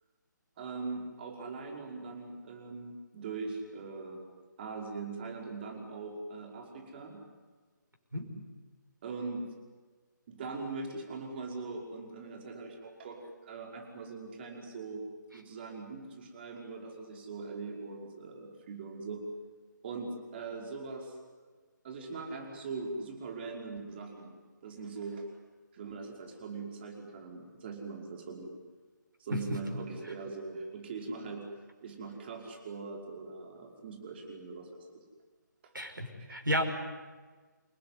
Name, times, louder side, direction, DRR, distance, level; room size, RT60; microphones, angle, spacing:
voice 1, 0.6-4.2 4.6-7.2 9.0-9.4 10.3-15.0 15.3-19.2 19.8-21.2 21.8-24.3 24.6-25.2 25.7-28.5 29.2-31.4 31.8-35.0 36.2-36.4, right 4 dB, 30° right, 2 dB, 5.3 m, -41 dB
voice 2, 35.7-36.6, equal, 80° right, 4 dB, 5.6 m, -32 dB
28.5 x 18.5 x 9.6 m, 1.4 s
figure-of-eight pair, 145°, 11 cm